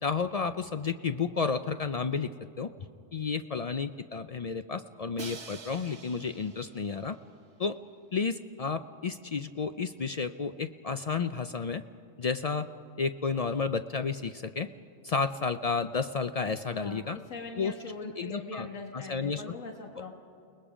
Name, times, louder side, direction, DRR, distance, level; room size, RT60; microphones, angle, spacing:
voice 1, 0.0-2.3 2.6-2.7 3.1-7.2 7.6-7.8 8.1-11.8 12.2-12.7 13.0-14.7 15.0-17.2 17.6-17.7 18.0-18.7 18.9-19.4, left 5 dB, 60° left, 10 dB, 0.3 m, -31 dB
Crash cymbal, 5.2-7.2, right 4 dB, 55° right, 1.5 m, -46 dB
voice 2, 16.7-20.1, left 4 dB, 85° left, 2 dB, 1.9 m, -42 dB
29.5 x 19.5 x 5.0 m, 2.6 s
omnidirectional pair, 1.3 m